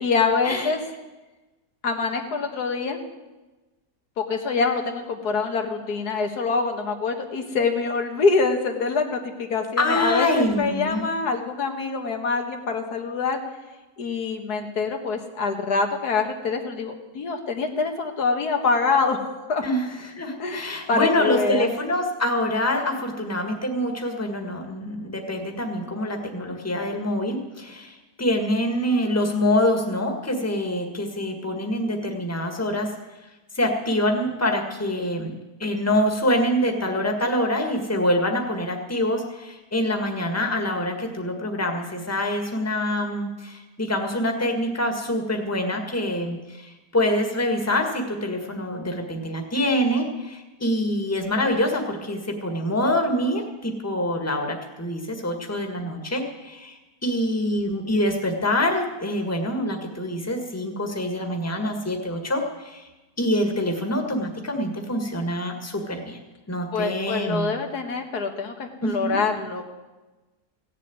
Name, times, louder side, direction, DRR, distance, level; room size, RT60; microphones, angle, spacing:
voice 1, 0.0-0.8 1.8-3.0 4.2-13.4 14.0-19.6 20.4-21.7 66.7-69.7, left 4 dB, 85° left, 4 dB, 2.0 m, -25 dB
voice 2, 9.8-11.1 19.6-32.9 33.5-35.3 35.6-62.9 63.2-66.2 66.5-67.5 68.8-69.2, left 1 dB, 10° left, 3 dB, 1.6 m, -25 dB
16.5 x 7.5 x 9.2 m, 1.1 s
omnidirectional pair, 1.6 m